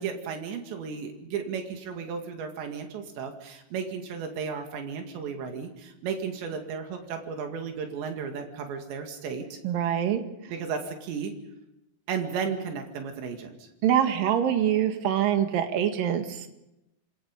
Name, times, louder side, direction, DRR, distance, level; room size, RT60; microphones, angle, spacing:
voice 1, 0.0-9.6 10.5-11.3 12.1-13.7, right 6 dB, 85° right, 4 dB, 4.5 m, -34 dB
voice 2, 9.6-10.2 13.8-16.5, right 9 dB, 60° right, 6 dB, 3.2 m, -24 dB
27.5 x 21.5 x 5.4 m, 0.89 s
omnidirectional pair, 5.0 m